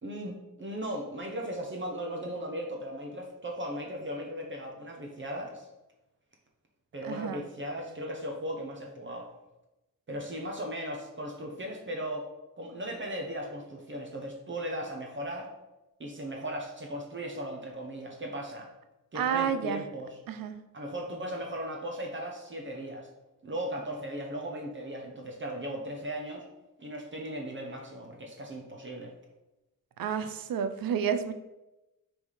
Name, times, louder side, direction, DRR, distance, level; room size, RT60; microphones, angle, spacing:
voice 1, 0.0-5.7 6.9-9.3 10.1-12.3 12.6-15.5 16.0-18.7 19.1-20.2 20.7-23.1 23.4-26.4 26.8-29.1, equal, 35° right, 0 dB, 1.0 m, -37 dB
voice 2, 7.0-7.4 19.1-19.8 20.3-20.6 30.0-31.3, right 7 dB, 90° right, 9 dB, 0.6 m, -30 dB
6.1 x 3.5 x 4.9 m, 0.98 s
wide cardioid pair, 115°, 34 cm